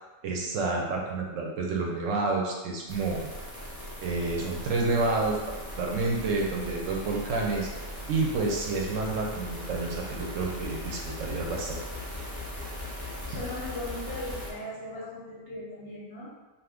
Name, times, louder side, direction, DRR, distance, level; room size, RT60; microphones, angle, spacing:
voice 1, 0.2-3.2 4.0-5.4 5.7-7.7 8.1-11.8, right 3 dB, 70° right, -1 dB, 0.9 m, -29 dB
sound 1, 2.9-14.5, left 1 dB, 20° left, 0.4 m, -39 dB
voice 2, 13.3-16.3, left 2 dB, 60° left, -5 dB, 0.7 m, -38 dB
2.7 x 2.3 x 3.4 m, 1.2 s
omnidirectional pair, 1.4 m